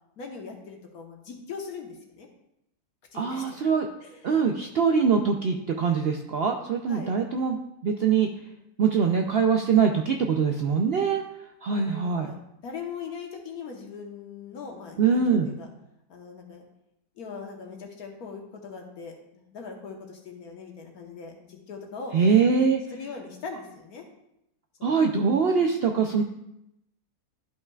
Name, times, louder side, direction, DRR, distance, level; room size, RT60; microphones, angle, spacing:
voice 1, 0.2-2.3 3.1-3.6 4.0-4.3 6.9-7.2 11.7-12.3 12.6-15.7 16.1-16.7 17.2-22.1 22.9-24.0 24.8-25.0, left 5 dB, 75° left, 2 dB, 1.6 m, -40 dB
voice 2, 3.1-3.9 4.2-8.3 8.8-11.2 11.6-12.3 15.0-15.5 22.1-22.8 24.8-26.2, right 6 dB, 65° right, 3 dB, 0.6 m, -23 dB
12.0 x 5.6 x 2.3 m, 0.82 s
omnidirectional pair, 1.6 m